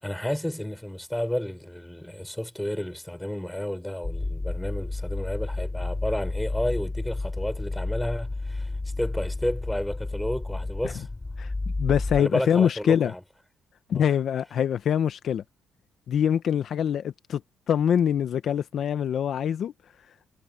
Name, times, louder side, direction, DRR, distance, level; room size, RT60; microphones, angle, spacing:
voice 1, 0.0-8.7 9.0-11.1 12.2-13.2 13.9-14.1, left 1 dB, 5° left, 4.7 m, -31 dB
sound 1, 4.0-12.2, left 2 dB, 20° left, 2.8 m, -31 dB
voice 2, 11.8-13.1 13.9-15.4 16.1-17.4 17.7-19.7, left 8 dB, 65° left, 0.9 m, -24 dB
cardioid pair, 90°, 0 cm